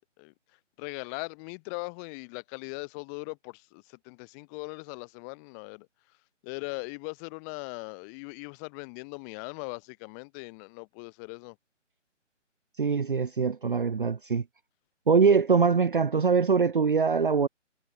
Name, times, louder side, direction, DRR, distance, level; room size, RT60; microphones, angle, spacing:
voice 1, 0.0-5.9 6.4-11.6, left 37 dB, 15° left, 2.8 m, -40 dB
voice 2, 12.8-14.4 15.1-17.5, right 5 dB, 45° right, 0.7 m, -23 dB
figure-of-eight pair, 150°, 37 cm